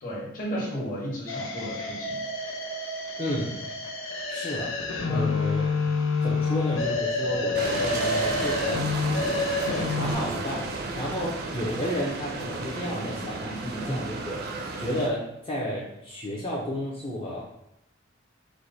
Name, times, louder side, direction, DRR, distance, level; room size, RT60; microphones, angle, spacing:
voice 1, 0.0-2.2 3.2-3.4 5.1-5.3 12.8-14.1, equal, 45° left, -4 dB, 1.3 m, -34 dB
sound 1, 1.3-10.1, left 3 dB, 80° left, 0.7 m, -28 dB
voice 2, 3.2-3.6 4.3-4.8 5.1-5.7 6.2-8.8 9.9-14.4 14.8-17.5, left 1 dB, 25° left, -5 dB, 0.6 m, -32 dB
sound 2, 7.5-15.1, right 3 dB, 50° right, 0.5 m, -33 dB
4.6 x 2.2 x 3.9 m, 0.79 s
head